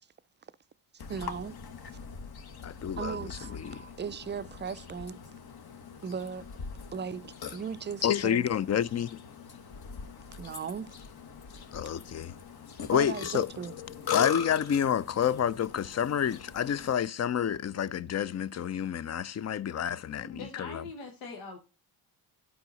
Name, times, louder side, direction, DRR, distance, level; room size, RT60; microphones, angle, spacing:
Burping eructation, 1.0-16.9, left 7 dB, 50° left, 1.3 m, -41 dB
voice 1, 1.1-1.6 3.0-5.2 6.0-6.5 6.9-8.4 10.3-10.9 12.9-13.7, right 6 dB, 25° right, 0.4 m, -37 dB
voice 2, 2.6-3.2 3.5-3.8 8.0-9.2 11.7-12.4 12.9-13.5 14.1-20.8, left 9 dB, 35° left, 0.5 m, -29 dB
voice 3, 20.2-21.6, left 4 dB, 85° left, 1.4 m, -42 dB
11.5 x 4.8 x 4.0 m
hypercardioid pair, 50°, 47 cm